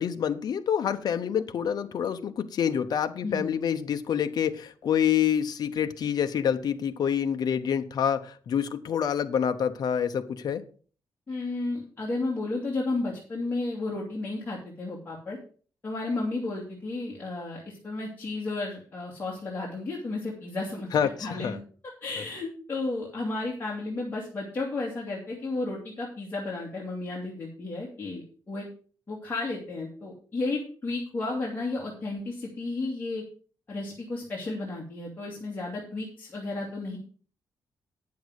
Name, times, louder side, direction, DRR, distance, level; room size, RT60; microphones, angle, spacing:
voice 1, 0.0-10.6 20.9-21.6, left 8 dB, 60° left, 0.9 m, -27 dB
voice 2, 11.3-15.4 15.8-20.9 21.2-21.5 22.0-28.7 29.1-33.2 33.7-37.0, left 2 dB, 25° left, 2.5 m, -33 dB
9.4 x 7.1 x 6.3 m
wide cardioid pair, 145°, 8 cm